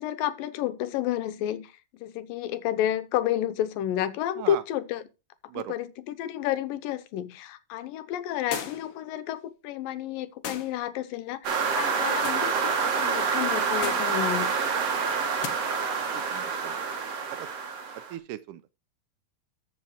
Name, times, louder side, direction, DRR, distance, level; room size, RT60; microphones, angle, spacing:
voice 1, 0.0-1.7 2.0-5.1 5.5-11.4 11.7-14.5, left 11 dB, 90° left, 2.6 m, -30 dB
sound 1, 8.5-9.0 10.4-10.8 12.2-12.5 13.8-14.2 15.4-15.6, left 8 dB, 55° left, 1.7 m, -36 dB
sound 2, 11.4-18.1, right 5 dB, 55° right, 2.6 m, -27 dB
voice 2, 16.3-16.8 17.4-17.5 18.1-18.6, right 13 dB, 80° right, 2.0 m, -37 dB
13.5 x 5.7 x 4.8 m
omnidirectional pair, 3.9 m